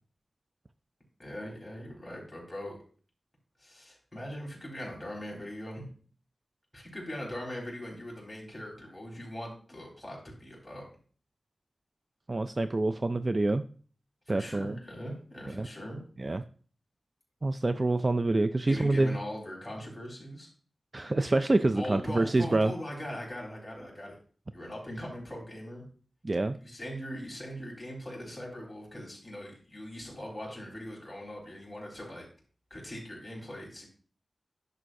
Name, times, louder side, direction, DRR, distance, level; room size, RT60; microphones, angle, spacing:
voice 1, 1.2-2.8 3.6-5.9 6.7-10.8 14.3-16.0 18.7-20.5 21.7-24.1 24.5-25.8 26.6-32.3 32.7-33.9, equal, 10° left, -3 dB, 4.1 m, -41 dB
voice 2, 12.3-13.6 14.3-14.8 15.5-15.7 16.2-16.4 17.4-19.2 20.9-22.7 26.2-26.6, right 2 dB, 30° right, 10 dB, 0.3 m, -26 dB
11.0 x 6.7 x 2.6 m, 0.42 s
wide cardioid pair, 115°, 0 cm